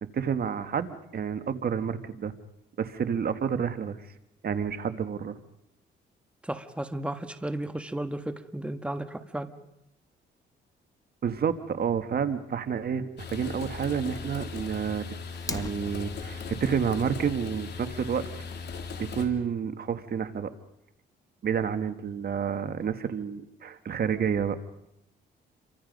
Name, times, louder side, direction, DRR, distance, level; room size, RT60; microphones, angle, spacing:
voice 1, 0.0-2.3 2.8-4.0 4.4-5.4 11.2-15.1 15.5-18.2 19.0-20.5 21.4-24.6, right 7 dB, 50° right, 9 dB, 1.5 m, -29 dB
voice 2, 6.4-9.5, right 1 dB, 5° right, 8 dB, 1.5 m, -34 dB
sound 1, 13.2-19.3, left 5 dB, 55° left, 3.4 m, -38 dB
Fire, 15.3-16.3, left 3 dB, 15° left, 1.4 m, -38 dB
29.5 x 24.5 x 5.3 m, 0.82 s
cardioid pair, 90°, 20 cm